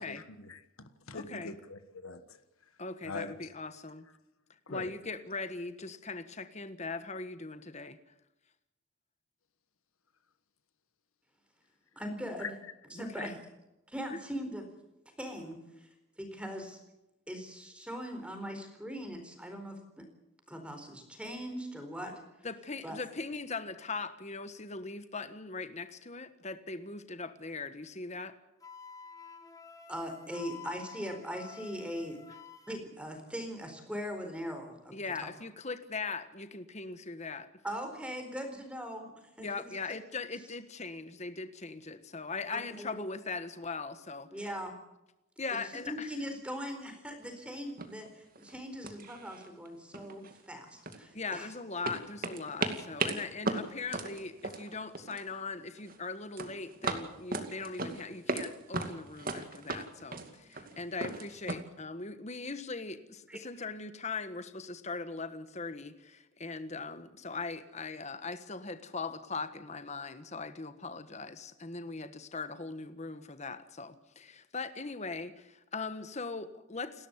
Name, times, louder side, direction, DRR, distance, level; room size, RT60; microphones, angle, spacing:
voice 1, 0.0-2.4 3.0-3.3 4.7-4.9 12.4-12.5, left 3 dB, 85° left, 1.5 m, -43 dB
voice 2, 1.1-1.5 2.8-4.1 4.7-8.0 13.0-13.3 14.1-14.2 22.4-28.3 34.9-37.5 39.4-44.3 45.4-46.1 51.1-77.1, left 4 dB, 35° left, 1.4 m, -40 dB
voice 3, 12.0-12.5 13.0-13.4 13.9-14.6 15.2-15.9 16.2-16.8 17.3-19.8 20.5-22.2 22.8-23.0 29.9-32.2 32.7-34.9 35.2-35.3 37.6-39.1 39.4-39.7 42.5-43.0 44.3-44.7 45.9-51.5 63.3-63.4, equal, 5° right, 4.1 m, -40 dB
Wind instrument woodwind instrument, 28.6-32.8, left 6 dB, 15° left, 1.9 m, -50 dB
sound 1, 47.3-47.4 47.8-48.1 48.4-48.6 48.8-49.7 49.9-51.4 51.8-55.3 55.6-56.0 56.4-58.5 58.7-61.5, right 3 dB, 40° right, 2.4 m, -36 dB
29.5 x 13.0 x 8.2 m
head